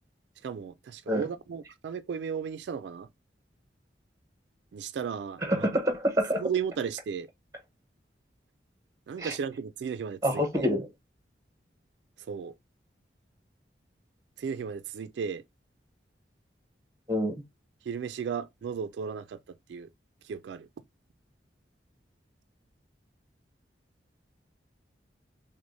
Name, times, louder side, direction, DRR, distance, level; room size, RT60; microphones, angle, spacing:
voice 1, 0.4-3.1 4.7-5.7 6.4-7.3 9.1-10.7 12.2-12.5 14.4-15.4 17.8-19.9 20.2-20.7, right 6 dB, 75° right, 0.3 m, -35 dB
voice 2, 5.4-6.4 9.2-9.3 10.2-10.9 17.1-17.3, equal, 15° right, 0.9 m, -27 dB
6.0 x 2.1 x 2.5 m
head